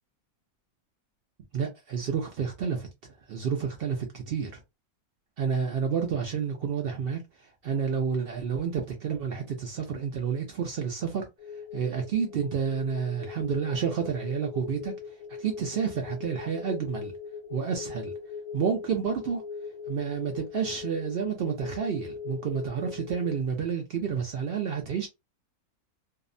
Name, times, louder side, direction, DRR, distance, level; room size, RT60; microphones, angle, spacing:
voice 1, 1.5-4.6 5.4-11.3 11.7-14.9 15.4-17.1 17.5-18.1 18.5-19.4 19.9-25.1, right 6 dB, 75° right, 0.5 m, -30 dB
sound 1, 11.4-23.4, left 6 dB, 45° left, 0.5 m, -40 dB
2.7 x 2.1 x 2.5 m
omnidirectional pair, 1.6 m